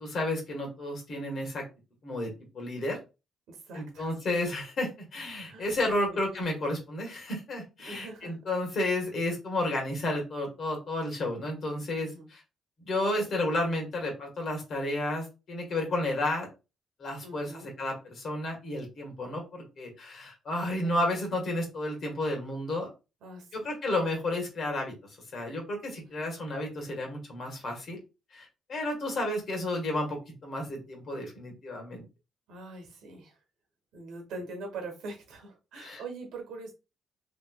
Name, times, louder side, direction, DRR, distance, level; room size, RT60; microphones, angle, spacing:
voice 1, 0.0-1.6 2.0-3.0 3.7-12.4 12.8-16.5 17.0-22.9 23.5-24.9 25.3-28.0 28.3-32.0 35.8-36.0, left 1 dB, 55° left, 1 dB, 1.5 m, -32 dB
voice 2, 3.5-4.2 5.5-5.7 6.1-6.2 7.8-8.4 12.0-12.3 17.2-17.7 20.8-21.0 23.2-23.7 26.0-26.3 32.5-33.4 33.9-36.7, right 3 dB, 80° right, 3 dB, 1.2 m, -43 dB
3.1 x 3.1 x 2.3 m, 0.29 s
cardioid pair, 90°, 0 cm